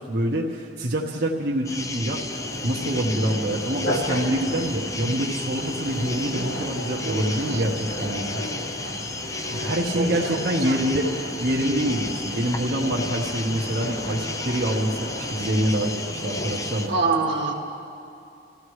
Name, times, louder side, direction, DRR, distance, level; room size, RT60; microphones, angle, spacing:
voice 1, 0.1-2.2 2.6-8.4 9.5-11.1 11.4-17.0, right 1 dB, 55° right, -3 dB, 1.2 m, -26 dB
sound 1, 1.6-16.9, left 2 dB, 20° left, 0.5 m, -33 dB
sound 2, 2.3-17.0, equal, 75° left, 2.6 m, -34 dB
voice 2, 9.9-10.8 16.9-17.5, right 3 dB, 85° right, 0 dB, 1.8 m, -26 dB
29.5 x 15.0 x 3.2 m, 2.5 s
head